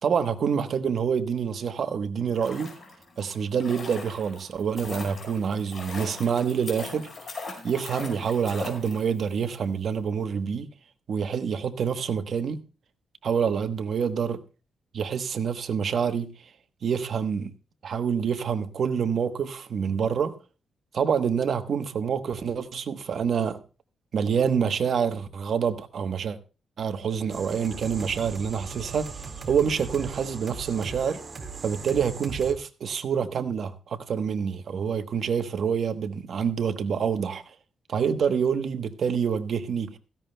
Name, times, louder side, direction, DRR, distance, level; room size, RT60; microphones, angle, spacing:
voice 1, 0.0-2.8 3.2-10.7 11.1-12.6 13.2-14.4 14.9-16.3 16.8-17.5 17.8-20.4 20.9-23.6 24.1-26.4 26.8-29.1 29.5-31.2 31.6-37.5 37.9-40.0, right 7 dB, 55° right, 1.1 m, -27 dB
sound 1, 2.2-9.4 9.6-9.7, left 3 dB, 40° left, 5.2 m, -40 dB
sound 2, 27.3-32.5, right 4 dB, 35° right, 2.0 m, -39 dB
16.5 x 15.0 x 2.2 m
cardioid pair, 140°, 0 cm